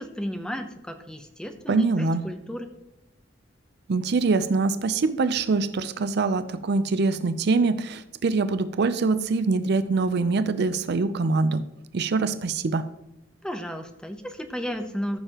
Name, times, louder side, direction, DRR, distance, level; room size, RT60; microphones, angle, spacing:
voice 1, 0.0-2.7 13.4-15.2, equal, 5° left, 7 dB, 0.8 m, -33 dB
voice 2, 1.7-2.3 3.9-11.6 11.9-12.9, right 3 dB, 60° right, 13 dB, 0.5 m, -24 dB
14.5 x 6.7 x 2.9 m, 0.91 s
head